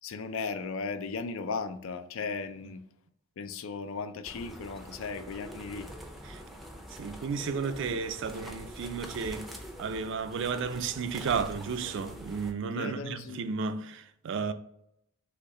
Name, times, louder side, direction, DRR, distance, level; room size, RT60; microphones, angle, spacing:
voice 1, 0.0-2.8 3.4-5.9 12.7-13.4, left 4 dB, 70° left, 0.4 m, -36 dB
sound 1, 4.2-12.5, equal, ahead, 0.4 m, -44 dB
voice 2, 7.0-9.5 9.8-14.5, right 5 dB, 60° right, 0.4 m, -33 dB
4.2 x 3.0 x 3.7 m
head